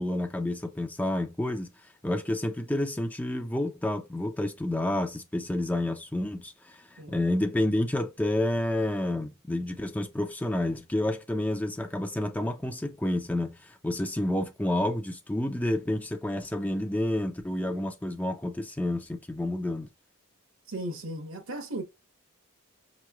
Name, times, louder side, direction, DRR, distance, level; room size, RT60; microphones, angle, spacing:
voice 1, 0.0-1.7 2.0-19.9, left 1 dB, 10° left, 0.4 m, -29 dB
voice 2, 20.7-21.8, right 1 dB, 65° right, 1.1 m, -36 dB
5.4 x 3.0 x 2.3 m
head